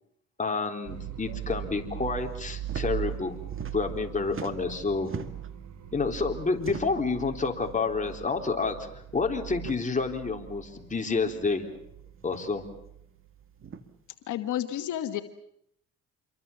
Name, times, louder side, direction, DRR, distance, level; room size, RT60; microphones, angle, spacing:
voice 1, 0.4-3.4 3.7-5.1 5.9-11.8 12.2-12.6, left 4 dB, 25° left, 3 dB, 3.8 m, -29 dB
sound 1, 0.9-13.8, right 11 dB, 70° right, 3.4 m, -40 dB
sound 2, 2.6-2.9 3.2-4.0 4.3-5.6 6.6-7.1 8.0-8.2 8.5-8.6 9.5-9.8 11.0-11.1 12.2-12.5 13.6-13.8, right 5 dB, 45° right, 2.1 m, -41 dB
voice 2, 14.3-15.2, left 11 dB, 80° left, 8 dB, 1.5 m, -30 dB
27.5 x 23.5 x 7.2 m, 0.74 s
cardioid pair, 90°, 30 cm